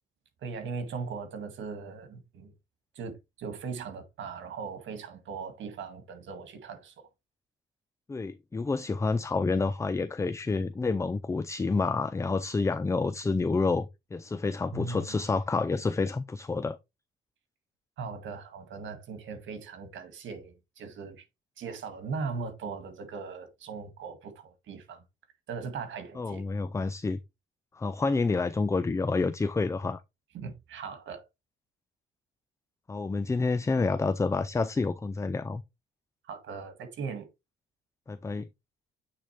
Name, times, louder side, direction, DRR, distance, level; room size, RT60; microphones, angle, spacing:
voice 1, 0.4-2.5 3.0-6.9 14.7-15.1 18.0-21.2 21.6-25.0 25.5-26.4 30.3-31.3 36.2-37.3, right 5 dB, 70° right, 1.8 m, -39 dB
voice 2, 8.1-16.8 26.2-27.2 27.7-30.0 32.9-35.6 38.1-38.5, left 3 dB, 15° left, 0.4 m, -28 dB
8.6 x 3.8 x 3.2 m
cardioid pair, 90°, 20 cm